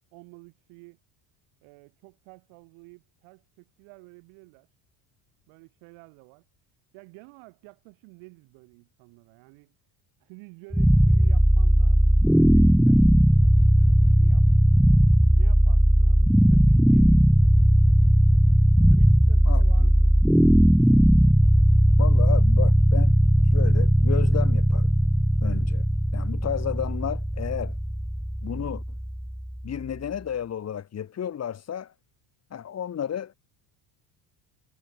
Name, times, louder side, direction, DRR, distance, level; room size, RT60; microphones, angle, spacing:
voice 1, 0.1-1.0 1.6-4.7 5.5-6.4 6.9-9.7 10.2-14.5 15.4-17.4 18.8-20.1, right 30 dB, 80° right, 7.8 m, -51 dB
sound 1, 10.7-29.8, equal, ahead, 0.6 m, -18 dB
voice 2, 19.4-19.9 22.0-23.1 23.5-24.9 25.4-25.8 26.1-27.8 28.4-28.8 29.6-31.9 32.5-33.3, left 9 dB, 30° left, 1.7 m, -32 dB
cardioid pair, 115°, 47 cm